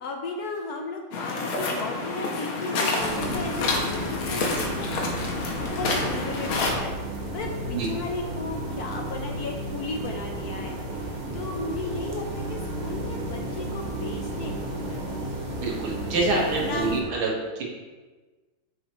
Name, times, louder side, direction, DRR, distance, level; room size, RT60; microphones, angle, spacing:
voice 1, 0.0-7.0 7.3-15.2 16.6-17.1, left 3 dB, 60° left, 2 dB, 1.1 m, -35 dB
sound 1, 1.1-6.7, left 3 dB, 85° left, 2.0 m, -28 dB
sound 2, 3.0-17.0, right 1 dB, 30° right, 0.8 m, -33 dB
voice 2, 15.6-17.3, right 3 dB, 85° right, -2 dB, 2.4 m, -26 dB
9.0 x 7.3 x 3.1 m, 1.3 s
omnidirectional pair, 2.2 m